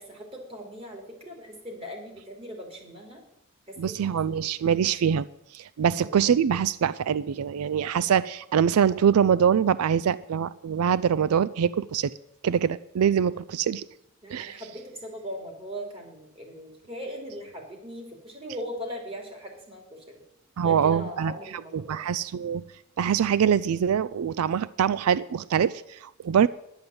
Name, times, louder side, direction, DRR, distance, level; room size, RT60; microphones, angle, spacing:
voice 1, 0.0-3.2 3.7-4.5 5.8-6.2 14.2-20.2 20.6-21.9, equal, 25° right, 1 dB, 3.1 m, -39 dB
voice 2, 3.8-5.3 5.5-12.1 12.4-13.8 14.3-14.6 20.6-21.3 21.7-22.6 23.0-26.5, right 8 dB, 85° right, 18 dB, 0.4 m, -24 dB
10.5 x 9.3 x 7.8 m, 0.79 s
head